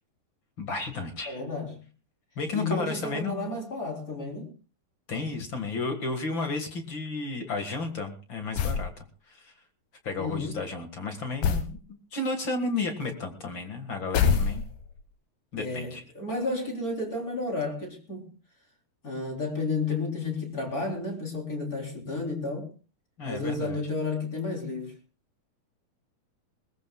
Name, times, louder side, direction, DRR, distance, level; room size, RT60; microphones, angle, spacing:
voice 1, 0.6-1.4 2.3-3.5 5.1-9.5 10.0-11.8 12.1-14.6 15.5-16.0 23.2-23.8, left 3 dB, 45° left, 1.7 m, -33 dB
voice 2, 1.3-1.8 2.5-4.5 10.2-10.6 15.6-18.3 19.0-22.7 23.2-24.9, left 3 dB, 20° left, 3.7 m, -32 dB
sound 1, 8.6-8.9 11.4-11.8 14.1-14.9, left 6 dB, 65° left, 2.7 m, -24 dB
21.5 x 20.0 x 2.3 m
omnidirectional pair, 4.6 m